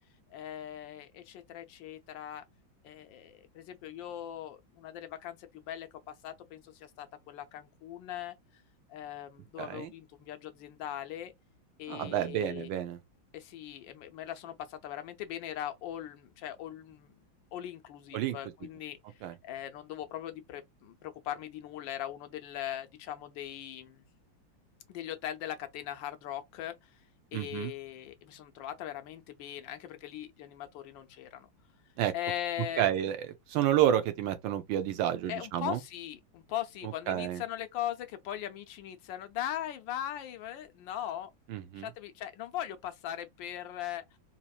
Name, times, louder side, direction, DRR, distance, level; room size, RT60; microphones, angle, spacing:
voice 1, 0.3-2.4 2.8-8.6 8.9-11.3 11.8-12.7 13.3-17.1 17.5-24.0 24.9-27.0 27.3-31.5 32.1-33.1 35.3-41.3 41.7-44.2, left 11 dB, 75° left, 1.3 m, -40 dB
voice 2, 9.6-9.9 11.9-13.0 18.1-18.4 19.2-19.3 27.3-27.7 32.0-32.1 32.8-35.8 37.1-37.4 41.5-41.9, right 11 dB, 80° right, 1.3 m, -30 dB
4.2 x 2.8 x 2.4 m
omnidirectional pair, 2.1 m